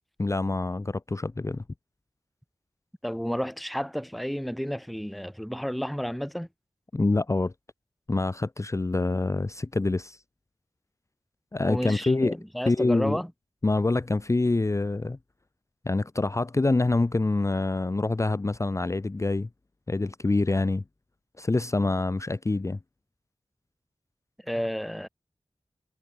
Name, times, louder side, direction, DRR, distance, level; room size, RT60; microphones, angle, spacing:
voice 1, 0.2-1.6 6.9-7.5 8.1-10.2 11.5-12.4 12.7-13.2 13.6-15.2 15.8-19.5 19.9-20.8 21.4-22.8, left 2 dB, 30° left, 0.6 m, -26 dB
voice 2, 3.0-6.5 11.7-13.3 24.4-25.1, equal, ahead, 0.8 m, -31 dB
wide cardioid pair, 70°, 10 cm